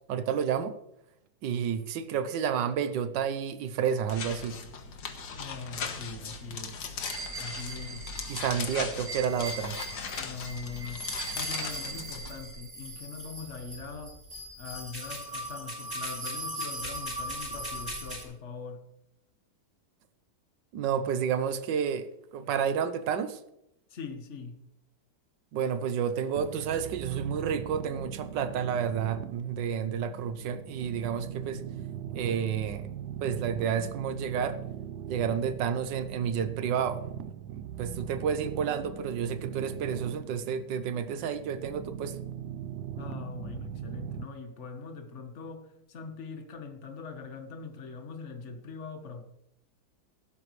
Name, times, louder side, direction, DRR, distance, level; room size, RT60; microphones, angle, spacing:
voice 1, 0.1-0.8 1.4-4.6 8.3-9.8 20.7-22.1 22.3-23.4 25.5-31.6 32.1-32.9 33.2-34.6 35.1-37.0 37.5-42.2, right 7 dB, 90° right, 11 dB, 1.5 m, -30 dB
sound 1, 4.1-12.4, left 5 dB, 70° left, 1.9 m, -38 dB
voice 2, 5.3-6.8 7.3-8.1 10.2-14.2 14.6-18.9 23.9-24.6 43.0-49.2, left 5 dB, 45° left, 6 dB, 1.5 m, -42 dB
sound 2, 7.0-18.2, right 1 dB, 20° right, 5.8 m, -39 dB
sound 3, 26.4-44.2, right 9 dB, 70° right, 1.2 m, -40 dB
16.0 x 12.5 x 3.2 m, 0.82 s
omnidirectional pair, 1.9 m